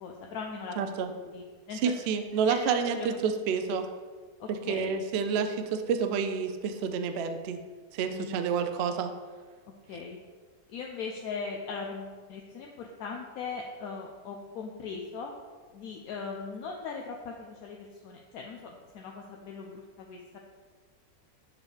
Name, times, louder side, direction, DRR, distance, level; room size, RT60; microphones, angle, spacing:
voice 1, 0.0-1.9 2.5-3.3 3.7-3.8 4.4-5.0 8.1-8.5 9.9-10.2 10.7-15.3 15.7-20.4, left 5 dB, 75° left, 0 dB, 1.0 m, -39 dB
voice 2, 0.8-1.1 1.8-3.8 4.5-7.6 7.9-9.1, right 6 dB, 85° right, 7 dB, 0.5 m, -29 dB
6.8 x 5.2 x 3.2 m, 1.5 s
omnidirectional pair, 1.7 m